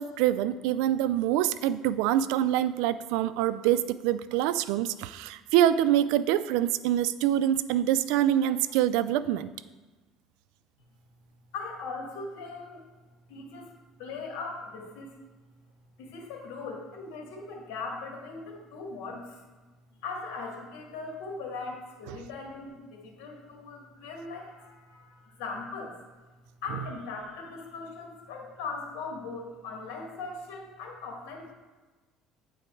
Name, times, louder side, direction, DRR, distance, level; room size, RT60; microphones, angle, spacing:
voice 1, 0.0-9.5 22.1-22.2, right 11 dB, 80° right, 15 dB, 0.3 m, -25 dB
voice 2, 11.5-12.8 13.3-15.1 16.0-19.4 20.0-26.0 26.6-31.5, left 4 dB, 85° left, 1 dB, 1.7 m, -39 dB
9.2 x 3.9 x 4.5 m, 1.3 s
cardioid pair, 120°, 0 cm